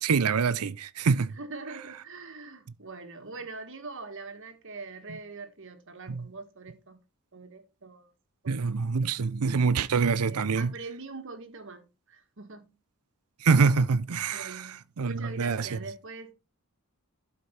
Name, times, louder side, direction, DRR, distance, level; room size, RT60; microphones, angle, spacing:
voice 1, 0.0-1.3 6.2-6.3 8.5-10.7 13.4-14.5 15.0-15.8, right 5 dB, 85° right, 0.6 m, -25 dB
voice 2, 1.4-7.0 7.3-8.1 8.4-8.7 10.2-12.7 14.3-16.3, right 3 dB, 60° right, 1.7 m, -43 dB
12.0 x 5.2 x 4.4 m
head